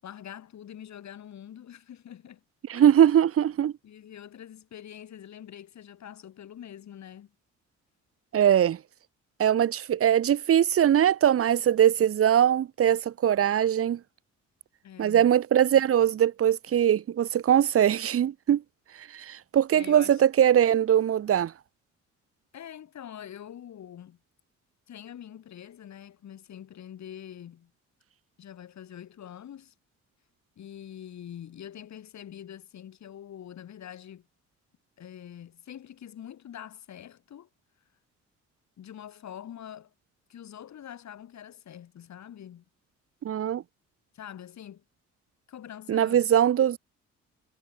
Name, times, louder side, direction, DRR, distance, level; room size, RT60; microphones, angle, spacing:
voice 1, 0.0-2.4 2.7-3.2 3.8-7.3 14.8-15.3 19.7-20.2 22.5-24.2 24.9-27.7 28.4-29.7 30.6-34.3 35.0-37.5 38.8-39.9 40.3-42.6 44.1-44.8 45.5-46.3, left 10 dB, 65° left, 7.8 m, -45 dB
voice 2, 2.7-3.7 8.3-8.8 9.4-14.0 15.0-18.6 19.1-21.5 43.2-43.6 45.9-46.8, right 10 dB, 50° right, 0.9 m, -21 dB
cardioid pair, 90°, 30 cm